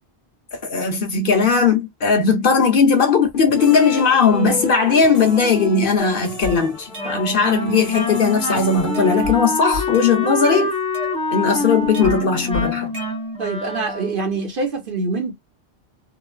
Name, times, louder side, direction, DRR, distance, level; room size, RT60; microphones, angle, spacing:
voice 1, 0.5-10.7 11.3-12.9, left 5 dB, 55° left, 0.8 m, -18 dB
sound 1, 3.5-9.8, left 4 dB, 35° left, 1.1 m, -33 dB
sound 2, 6.0-7.4 7.7-8.6 8.9-9.4 9.7-11.5 11.9-13.6, left 3 dB, 70° right, 1.3 m, -33 dB
Wind instrument woodwind instrument, 7.0-14.3, left 2 dB, 5° left, 0.8 m, -26 dB
voice 2, 13.4-15.3, right 3 dB, 55° right, 1.1 m, -24 dB
3.1 x 2.2 x 2.2 m
omnidirectional pair, 1.1 m